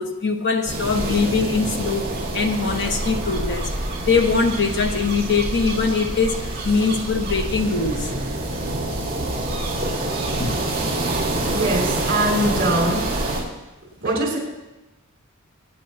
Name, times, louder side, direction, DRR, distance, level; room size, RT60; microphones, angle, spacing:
voice 1, 0.0-2.1 2.3-3.7 4.0-8.1 9.2-9.3 10.4-10.6, left 4 dB, 55° left, 4 dB, 1.4 m, -22 dB
sound 1, 0.7-13.4, right 1 dB, 30° right, 4.4 m, -26 dB
voice 2, 11.5-13.0 14.0-14.4, right 1 dB, 50° right, -2 dB, 5.4 m, -22 dB
25.0 x 9.3 x 2.9 m, 1.0 s
head